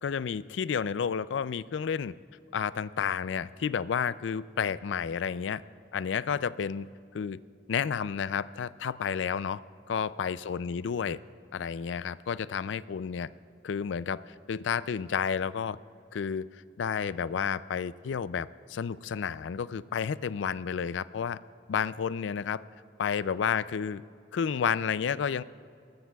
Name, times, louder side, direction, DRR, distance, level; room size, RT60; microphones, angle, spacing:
voice 1, 0.0-2.1 2.5-5.6 5.9-6.9 7.1-7.4 7.7-9.6 9.9-11.2 11.5-13.3 13.6-15.8 16.1-21.4 21.7-22.6 23.0-24.0 24.3-25.4, left 7 dB, 85° left, 17 dB, 0.4 m, -31 dB
24.0 x 20.0 x 2.3 m, 2.5 s
head